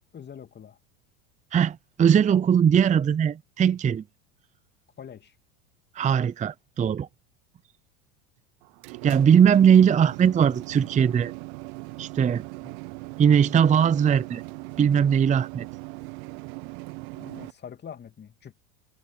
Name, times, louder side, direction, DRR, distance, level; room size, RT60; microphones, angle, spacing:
voice 1, 0.1-0.8 5.0-5.3 12.6-12.7 17.1-18.5, left 8 dB, 25° left, 2.8 m, -44 dB
voice 2, 1.5-4.0 6.0-7.1 9.0-11.3 12.0-12.4 13.2-14.4 14.8-15.7, right 8 dB, 20° right, 0.7 m, -20 dB
sound 1, 8.6-17.5, right 29 dB, 60° right, 1.0 m, -39 dB
hypercardioid pair, 95°, 39 cm